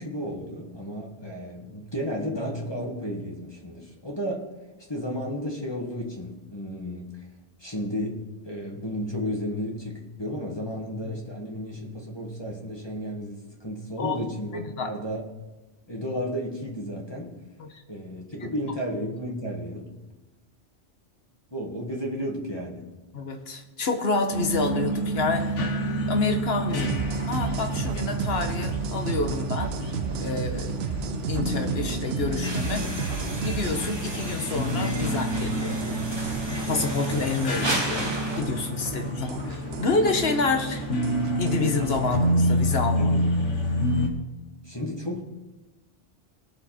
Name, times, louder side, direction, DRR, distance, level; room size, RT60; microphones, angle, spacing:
voice 1, 0.0-4.5 4.9-7.1 7.6-15.2 15.9-17.4 17.9-19.9 21.5-22.9 26.7-26.9 43.0-43.2 44.6-45.2, equal, 20° left, -1 dB, 1.8 m, -33 dB
voice 2, 14.5-14.9 17.6-17.8 18.4-18.5 23.1-25.5 26.1-26.9 27.3-29.7 30.1-30.7 31.3-32.9 33.4-35.8 36.7-38.1 38.4-40.8 41.4-43.1, left 3 dB, 60° left, 6 dB, 1.5 m, -28 dB
sound 1, 24.3-44.1, equal, 85° left, 1.7 m, -29 dB
sound 2, 26.8-42.3, right 9 dB, 65° right, 0.8 m, -34 dB
sound 3, 32.4-38.4, right 1 dB, 20° right, 1.3 m, -33 dB
20.5 x 6.9 x 4.3 m, 1.1 s
omnidirectional pair, 1.2 m